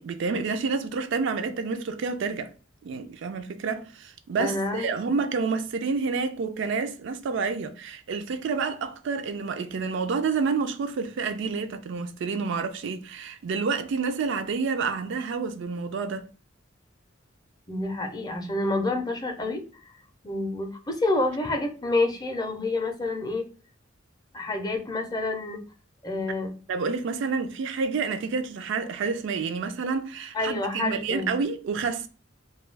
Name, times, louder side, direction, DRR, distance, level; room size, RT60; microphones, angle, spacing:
voice 1, 0.0-2.5 2.8-16.3 26.7-32.1, right 4 dB, 65° right, 0.4 m, -29 dB
voice 2, 4.4-4.9 17.7-19.6 20.2-23.5 24.3-25.6 26.0-26.5 30.3-31.3, left 2 dB, 20° left, 0.5 m, -28 dB
2.3 x 2.2 x 3.2 m
head